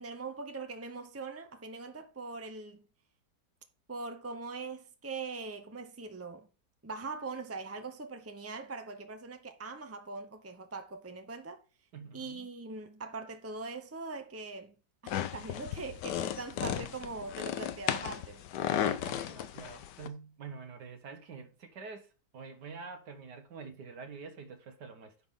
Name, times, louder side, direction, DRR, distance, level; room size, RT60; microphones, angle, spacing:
voice 1, 0.0-2.8 3.9-6.5 6.8-11.6 12.1-14.7 15.0-18.4, right 3 dB, 20° right, 0.3 m, -42 dB
voice 2, 11.9-12.4 18.8-25.1, right 5 dB, 75° right, 1.8 m, -46 dB
sound 1, 15.1-20.1, left 10 dB, 90° left, 1.4 m, -35 dB
10.0 x 6.0 x 3.7 m
omnidirectional pair, 1.8 m